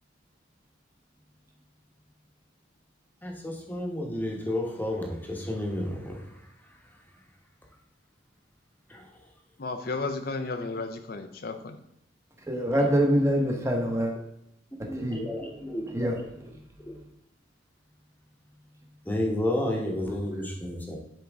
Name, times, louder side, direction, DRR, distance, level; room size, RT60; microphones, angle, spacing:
voice 1, 3.2-6.5 8.9-9.2 14.9-15.9 16.9-17.0 19.0-21.0, left 1 dB, 10° left, 0 dB, 1.1 m, -31 dB
voice 2, 9.6-11.8, left 3 dB, 50° left, 7 dB, 0.6 m, -33 dB
voice 3, 12.5-14.1 14.8-15.3 15.6-16.5, equal, 15° right, 1 dB, 1.1 m, -26 dB
10.5 x 4.6 x 3.5 m, 0.80 s
head